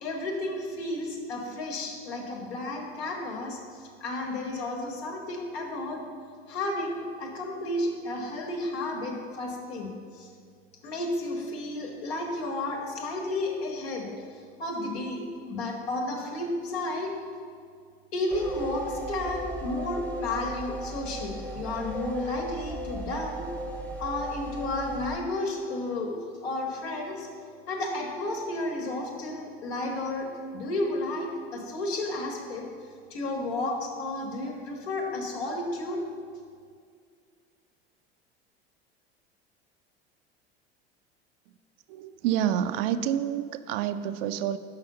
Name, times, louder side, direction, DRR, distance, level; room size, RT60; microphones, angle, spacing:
voice 1, 0.0-6.1 6.5-10.3 10.8-14.2 14.6-17.2 18.1-23.5 24.0-27.3 27.7-32.7 33.1-36.1, left 2 dB, 70° left, 1 dB, 1.5 m, -32 dB
sound 1, 18.3-25.2, right 2 dB, 5° left, 0.9 m, -36 dB
voice 2, 41.9-44.6, right 10 dB, 65° right, 12 dB, 0.5 m, -28 dB
5.8 x 5.6 x 6.7 m, 2.2 s
hypercardioid pair, 75°, 32 cm